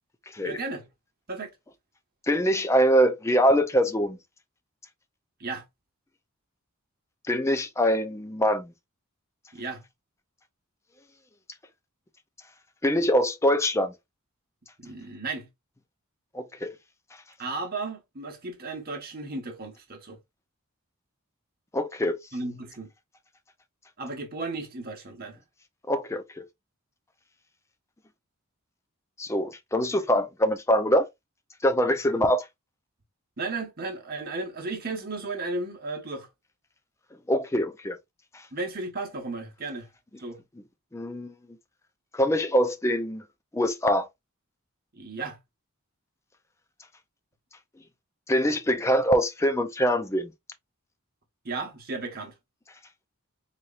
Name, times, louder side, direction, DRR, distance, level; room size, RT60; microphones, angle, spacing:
voice 1, 0.4-0.9 1.3-1.5 5.4-5.6 9.5-9.8 14.8-15.5 17.4-20.2 22.3-22.9 24.0-25.4 33.4-36.3 38.5-39.9 40.2-40.4 44.9-45.4 51.4-52.3, right 3 dB, 45° right, 1.2 m, -34 dB
voice 2, 2.3-4.2 7.3-8.7 12.8-13.9 16.3-16.7 21.7-22.2 25.9-26.4 29.2-31.1 31.6-32.4 37.3-38.0 40.9-41.3 42.1-43.2 43.5-44.1 48.3-50.3, equal, 15° left, 0.4 m, -24 dB
4.1 x 3.1 x 2.4 m
head